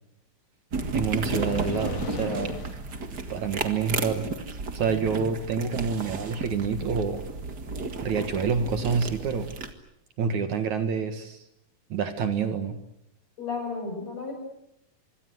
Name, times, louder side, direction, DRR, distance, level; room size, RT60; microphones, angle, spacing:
sound 1, 0.7-9.7, right 3 dB, 35° right, 1.9 m, -33 dB
voice 1, 0.9-2.5 3.3-4.3 4.7-7.2 8.0-9.6 10.2-11.4 11.9-12.8, right 6 dB, 60° right, 8 dB, 2.8 m, -27 dB
sound 2, 1.3-2.8, left 10 dB, 65° left, 2.4 m, -36 dB
voice 2, 13.4-14.3, left 4 dB, 50° left, 4 dB, 8.8 m, -33 dB
25.5 x 24.0 x 8.0 m, 0.80 s
omnidirectional pair, 4.0 m